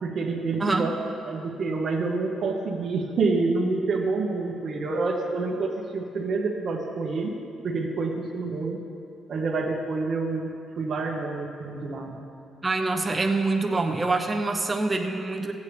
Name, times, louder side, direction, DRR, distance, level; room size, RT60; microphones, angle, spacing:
voice 1, 0.0-1.0 1.2-7.3 7.6-8.8 9.3-12.2, right 3 dB, 55° right, 0 dB, 1.1 m, -28 dB
voice 2, 12.6-15.5, right 3 dB, 20° right, 3 dB, 0.9 m, -25 dB
15.0 x 8.3 x 3.4 m, 2.6 s
cardioid pair, 90°, 0 cm